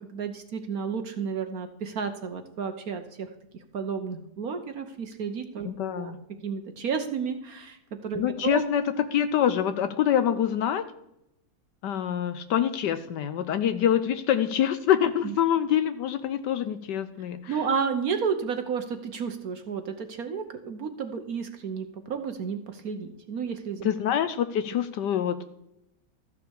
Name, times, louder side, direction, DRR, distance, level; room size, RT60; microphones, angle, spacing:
voice 1, 0.0-3.3 3.7-5.7 6.0-6.1 6.4-8.6 15.2-15.3 17.5-23.9, right 6 dB, 55° right, 7 dB, 1.2 m, -32 dB
voice 2, 5.6-6.2 8.2-10.9 11.8-17.6 23.8-25.5, left 9 dB, 70° left, 11 dB, 1.2 m, -25 dB
13.5 x 6.7 x 7.0 m, 0.81 s
omnidirectional pair, 2.2 m